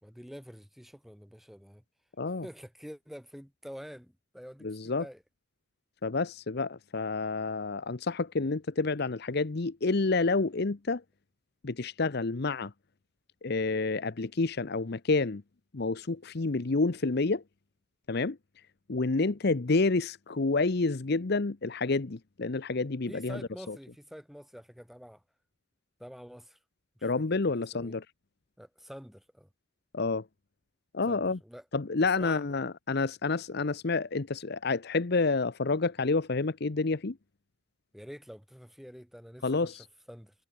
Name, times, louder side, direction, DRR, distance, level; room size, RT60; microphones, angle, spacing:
voice 1, 0.0-1.8 2.4-5.2 23.1-25.2 26.0-26.6 27.1-28.0 28.6-29.5 31.1-31.6 32.0-32.5 37.9-40.3, equal, ahead, 3.9 m, -47 dB
voice 2, 4.6-5.0 6.0-11.0 11.6-12.7 13.4-15.4 15.7-17.4 18.1-18.4 18.9-23.4 23.7-23.8 27.0-28.0 29.9-30.3 30.9-31.4 31.7-37.2 39.4-39.8, left 3 dB, 50° left, 0.8 m, -29 dB
head